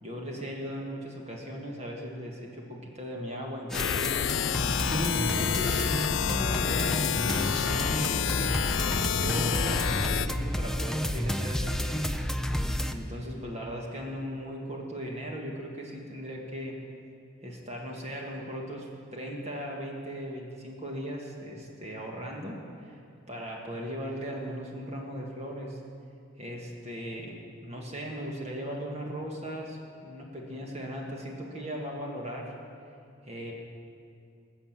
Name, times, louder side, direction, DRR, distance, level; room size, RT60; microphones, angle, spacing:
voice 1, 0.0-8.7 9.1-12.1 12.5-12.6 12.9-16.8 17.4-22.9 23.3-25.8 26.4-32.5 33.2-33.5, equal, 35° right, -1 dB, 1.7 m, -38 dB
sound 1, 3.7-10.3, left 8 dB, 80° left, 0.4 m, -28 dB
sound 2, 3.7-12.9, equal, 5° left, 0.4 m, -31 dB
19.5 x 7.1 x 7.4 m, 2.4 s
head